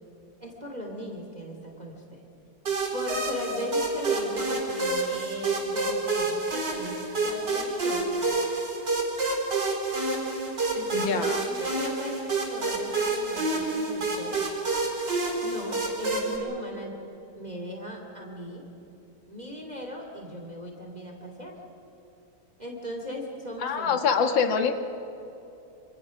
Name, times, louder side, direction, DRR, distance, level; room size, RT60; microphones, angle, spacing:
voice 1, 0.4-2.2 2.9-8.1 10.7-14.4 15.4-17.0 17.4-18.7 19.3-21.6 22.6-24.0, equal, 20° right, 1 dB, 2.7 m, -38 dB
sound 1, 2.7-16.4, right 3 dB, 65° right, 4.9 m, -28 dB
voice 2, 10.9-11.4 23.6-24.7, left 5 dB, 85° left, 6 dB, 2.2 m, -25 dB
26.0 x 26.0 x 6.3 m, 3.0 s
omnidirectional pair, 2.0 m